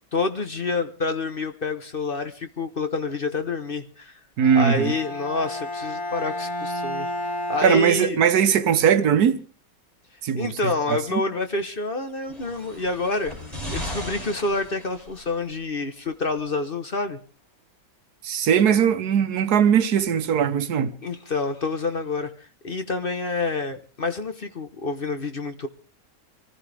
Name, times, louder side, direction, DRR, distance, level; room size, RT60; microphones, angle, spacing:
voice 1, 0.1-4.1 4.5-7.1 7.5-8.2 10.3-13.4 13.7-17.2 18.7-18.8 21.0-22.3 22.6-25.7, left 3 dB, 40° left, 1.2 m, -28 dB
Bowed string instrument, 4.4-8.5, left 1 dB, 5° left, 5.1 m, -32 dB
voice 2, 4.4-4.9 7.6-9.4 10.2-11.2 18.2-20.9, right 8 dB, 90° right, 1.5 m, -20 dB
sound 1, 12.1-15.5 16.4-16.5, equal, 25° left, 7.8 m, -36 dB
25.0 x 15.5 x 3.4 m
omnidirectional pair, 1.6 m